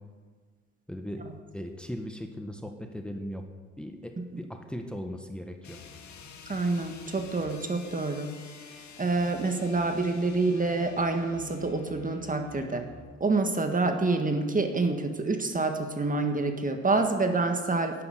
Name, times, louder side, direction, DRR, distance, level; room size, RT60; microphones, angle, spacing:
voice 1, 0.9-1.3 1.5-3.4 3.8-5.8, equal, 5° left, 4 dB, 1.6 m, -38 dB
sound 1, 5.6-13.1, left 4 dB, 70° left, 2.0 m, -47 dB
voice 2, 6.5-8.3 9.0-12.9 13.2-18.0, right 3 dB, 25° right, 6 dB, 1.7 m, -27 dB
11.5 x 10.0 x 9.3 m, 1.5 s
cardioid pair, 90°, 30 cm